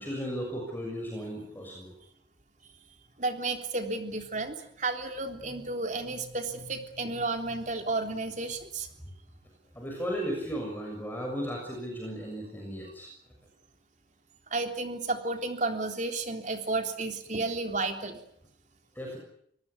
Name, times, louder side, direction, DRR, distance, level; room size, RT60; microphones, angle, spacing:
voice 1, 0.0-1.9 9.7-13.1 19.0-19.2, equal, 10° left, 0 dB, 6.6 m, -35 dB
voice 2, 3.2-8.9 14.5-18.2, right 3 dB, 45° right, 5 dB, 3.5 m, -32 dB
24.5 x 19.0 x 9.8 m, 0.70 s
head